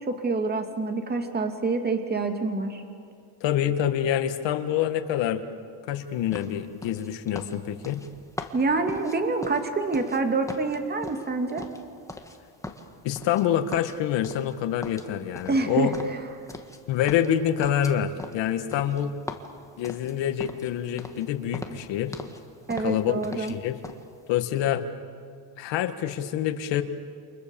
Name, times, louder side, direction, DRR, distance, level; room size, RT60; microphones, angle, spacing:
voice 1, 0.0-2.8 8.5-11.7 15.5-16.2 22.7-23.5, right 3 dB, 20° right, 5 dB, 2.5 m, -27 dB
voice 2, 3.4-5.4 5.9-8.0 13.0-15.9 16.9-19.1 19.8-22.1 22.8-23.8 24.3-24.8 25.6-26.8, left 10 dB, 75° left, 8 dB, 2.0 m, -26 dB
sound 1, 6.3-10.2 10.5-12.4 12.6-13.4 13.7-14.6 14.8-16.8 17.1-20.7 21.0-21.3 21.5-22.4 22.7-23.6 23.8-24.0, left 2 dB, 5° left, 1.9 m, -40 dB
30.0 x 28.0 x 7.2 m, 2.2 s
cardioid pair, 140°, 44 cm